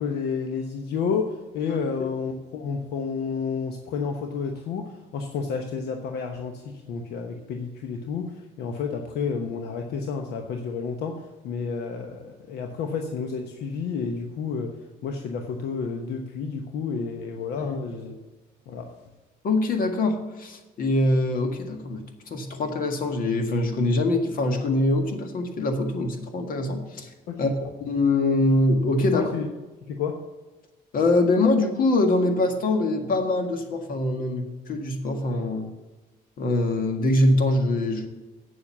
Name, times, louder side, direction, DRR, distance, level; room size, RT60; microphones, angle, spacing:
voice 1, 0.0-18.1 18.7-18.9 27.3-27.5 29.0-29.5 29.8-30.2, left 5 dB, 75° left, 4 dB, 1.0 m, -30 dB
voice 2, 1.7-2.1 17.6-17.8 19.4-22.0 22.3-27.1 27.4-29.2 30.9-35.7 36.4-38.1, left 2 dB, 55° left, 5 dB, 1.8 m, -23 dB
8.4 x 7.3 x 7.1 m, 1.2 s
cardioid pair, 110°, 17 cm